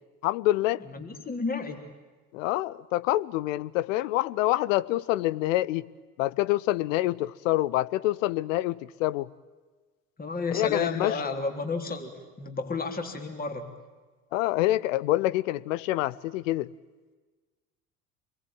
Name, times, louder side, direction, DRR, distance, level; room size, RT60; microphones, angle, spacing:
voice 1, 0.2-0.8 2.3-5.9 6.2-9.3 10.5-11.2 14.3-16.7, left 16 dB, 60° left, 0.9 m, -26 dB
voice 2, 0.8-1.9 10.2-12.1 12.4-13.7, left 4 dB, 20° left, 3.8 m, -31 dB
27.5 x 22.0 x 8.9 m
figure-of-eight pair, 70°, 45 cm